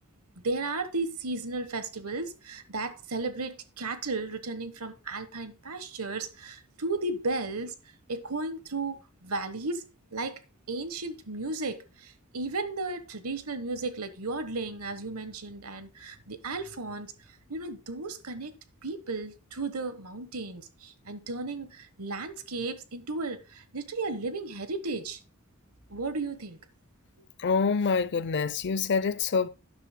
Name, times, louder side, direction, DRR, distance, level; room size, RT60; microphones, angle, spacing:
voice 1, 0.4-7.7 8.1-9.8 10.1-10.4 10.7-17.1 17.5-18.5 18.8-25.2 25.9-26.6, right 3 dB, 75° right, 1.2 m, -34 dB
voice 2, 27.4-29.5, left 5 dB, 55° left, 0.6 m, -26 dB
12.0 x 9.6 x 2.2 m
head